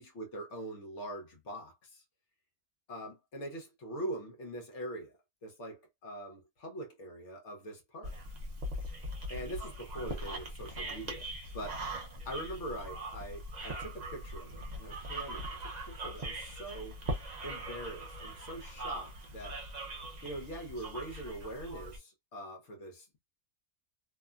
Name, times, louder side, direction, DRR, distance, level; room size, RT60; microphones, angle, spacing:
voice 1, 0.0-2.0 2.9-5.1 5.4-8.1 9.3-11.3 11.5-11.8 12.2-17.0 17.4-19.6 20.2-23.2, right 1 dB, 55° left, 1.2 m, -43 dB
sound 1, 8.0-22.0, right 1 dB, 45° right, 0.5 m, -41 dB
2.9 x 2.2 x 2.4 m
omnidirectional pair, 1.5 m